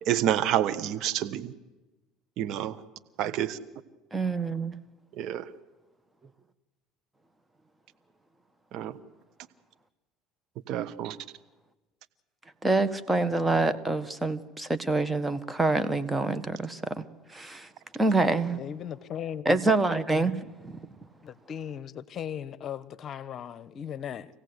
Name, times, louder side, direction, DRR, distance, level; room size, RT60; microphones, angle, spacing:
voice 1, 0.0-1.5 2.4-2.8 3.2-3.6 5.2-5.5 8.7-8.9 10.7-11.2, right 11 dB, 60° right, 1.2 m, -28 dB
voice 2, 4.1-4.8 12.6-17.0 17.3-17.7 17.9-18.6 19.4-20.8, right 2 dB, 15° right, 1.6 m, -26 dB
voice 3, 18.5-19.5 21.2-24.3, left 9 dB, 45° left, 1.1 m, -37 dB
26.5 x 17.0 x 8.2 m
hypercardioid pair, 75°, 0 cm